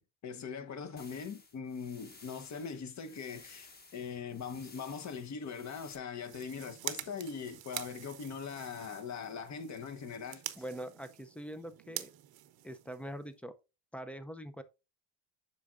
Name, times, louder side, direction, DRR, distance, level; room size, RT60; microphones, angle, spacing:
voice 1, 0.0-10.4, left 6 dB, 40° left, 1.0 m, -41 dB
sound 1, 1.0-6.0, left 3 dB, 20° left, 1.3 m, -56 dB
sound 2, 6.1-13.4, right 14 dB, 55° right, 0.8 m, -46 dB
voice 2, 10.6-12.1 12.6-13.5 13.9-14.6, equal, 5° left, 0.4 m, -43 dB
8.2 x 6.1 x 2.4 m
cardioid pair, 150°, 45 cm